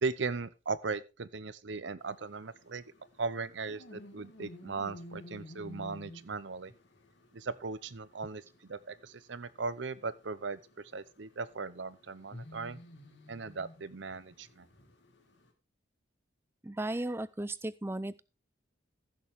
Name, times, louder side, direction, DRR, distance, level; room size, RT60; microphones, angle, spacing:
voice 1, 0.0-2.8 3.2-6.7 7.3-12.8 13.3-14.7, right 4 dB, 70° right, 0.7 m, -38 dB
sound 1, 2.0-15.5, left 1 dB, 70° left, 2.1 m, -53 dB
voice 2, 16.6-18.2, right 1 dB, 10° right, 0.4 m, -35 dB
15.0 x 6.8 x 3.6 m
head